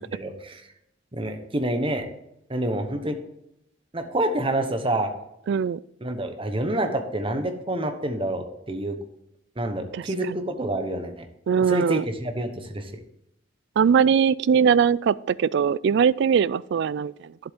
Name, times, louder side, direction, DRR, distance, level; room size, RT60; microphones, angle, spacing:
voice 1, 0.1-0.6 1.1-2.1 2.5-3.1 3.9-5.1 6.0-9.0 9.6-11.3 11.7-12.9, right 1 dB, 30° right, 6 dB, 1.1 m, -27 dB
voice 2, 5.5-5.8 9.9-10.4 11.5-12.0 13.8-17.1, right 7 dB, 65° right, 20 dB, 0.3 m, -21 dB
10.5 x 7.6 x 3.6 m, 0.81 s
head